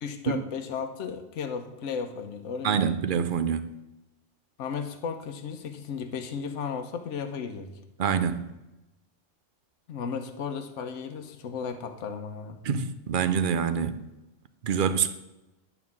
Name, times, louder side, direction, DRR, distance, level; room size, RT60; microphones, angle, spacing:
voice 1, 0.0-3.0 4.6-7.8 9.9-12.6, left 6 dB, 75° left, 1.2 m, -35 dB
voice 2, 2.6-3.7 8.0-8.5 12.6-14.0 14.6-15.1, right 7 dB, 50° right, 0.7 m, -26 dB
11.0 x 4.6 x 7.3 m
omnidirectional pair, 1.3 m